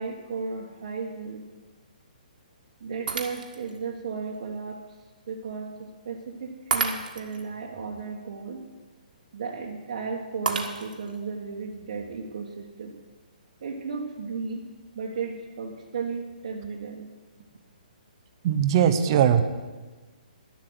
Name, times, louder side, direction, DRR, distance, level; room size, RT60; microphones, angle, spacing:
voice 1, 0.0-1.4 2.8-4.8 5.3-8.6 9.3-12.9 13.6-14.6 14.9-17.1, right 5 dB, 50° right, -1 dB, 1.3 m, -34 dB
Shatter, 3.1-3.8 4.3-4.4 6.7-7.4 10.5-11.2, right 5 dB, 70° right, 1.7 m, -30 dB
voice 2, 18.4-19.4, right 9 dB, 30° right, 9 dB, 0.8 m, -20 dB
11.5 x 7.8 x 7.9 m, 1.3 s
hypercardioid pair, 170°, 5 cm